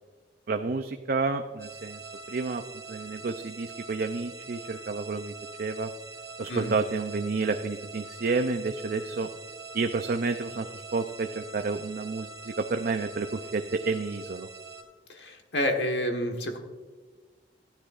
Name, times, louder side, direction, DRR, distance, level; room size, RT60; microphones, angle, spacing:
voice 1, 0.5-2.0 2.3-2.6 2.9-5.3 5.6-5.9 6.4-9.3 9.7-14.5, right 4 dB, 55° right, 5 dB, 0.5 m, -30 dB
sound 1, 1.6-14.8, right 4 dB, 20° right, 1.8 m, -44 dB
voice 2, 15.1-16.6, left 1 dB, 70° left, 4 dB, 1.4 m, -29 dB
14.5 x 10.0 x 2.5 m, 1.4 s
head